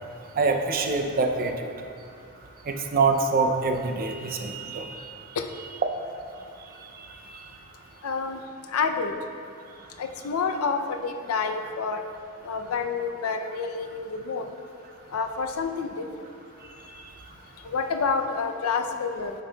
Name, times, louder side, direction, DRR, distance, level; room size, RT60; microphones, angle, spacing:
voice 1, 0.4-1.7 2.7-5.1 6.7-7.4 16.8-17.1, right 4 dB, 40° right, 4 dB, 0.5 m, -26 dB
voice 2, 8.0-8.4 8.7-9.1 10.0-12.0 12.4-14.4 15.1-16.0 17.6-19.3, left 5 dB, 70° left, 6 dB, 0.5 m, -28 dB
9.6 x 6.1 x 2.2 m, 2.4 s
head